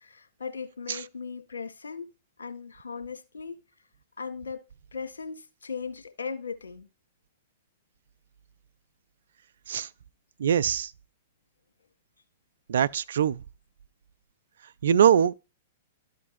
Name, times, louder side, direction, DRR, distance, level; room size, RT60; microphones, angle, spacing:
voice 1, 0.0-2.1 2.4-3.6 4.2-4.6 4.9-6.9, left 5 dB, 75° left, 1.6 m, -38 dB
voice 2, 10.4-10.9 12.7-13.4 14.8-15.3, right 9 dB, 70° right, 0.4 m, -22 dB
13.0 x 5.1 x 2.5 m
figure-of-eight pair, 110°, 0 cm